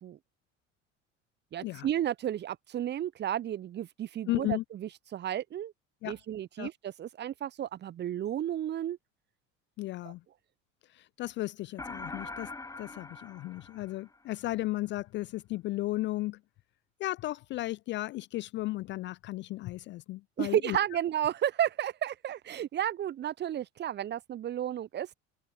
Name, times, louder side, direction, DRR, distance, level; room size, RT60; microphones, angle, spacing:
voice 1, 1.5-5.7 6.0-9.0 10.0-10.1 20.4-25.1, right 11 dB, 25° right, 0.8 m, -32 dB
voice 2, 4.3-4.6 6.0-6.2 6.6-6.7 9.8-10.2 10.9-12.5 12.8-16.4 17.0-20.8, left 17 dB, 30° left, 0.4 m, -35 dB
sound 1, 11.8-14.4, left 3 dB, 10° left, 1.1 m, -43 dB
open air
figure-of-eight pair, 70°, 39 cm